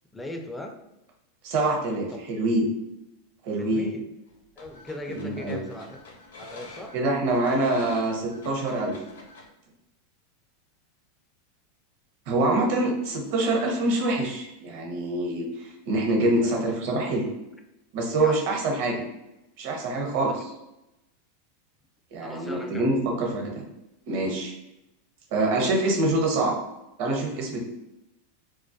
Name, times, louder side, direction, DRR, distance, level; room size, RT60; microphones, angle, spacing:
voice 1, 0.1-0.8 3.6-4.1 4.6-6.0 6.4-7.0 16.4-16.5 18.2-18.4 20.3-20.4 22.2-22.9, left 1 dB, 10° left, 4 dB, 0.4 m, -38 dB
voice 2, 1.4-2.7 3.4-3.9 5.1-5.6 6.9-9.0 12.3-17.3 17.9-19.0 19.6-20.3 22.1-23.6 24.1-24.5 25.3-26.6 27.0-27.6, right 2 dB, 60° right, 0 dB, 0.7 m, -25 dB
sound 1, 4.3-9.5, left 2 dB, 85° left, 0.5 m, -47 dB
2.2 x 2.2 x 2.5 m, 0.89 s
hypercardioid pair, 105°, 0 cm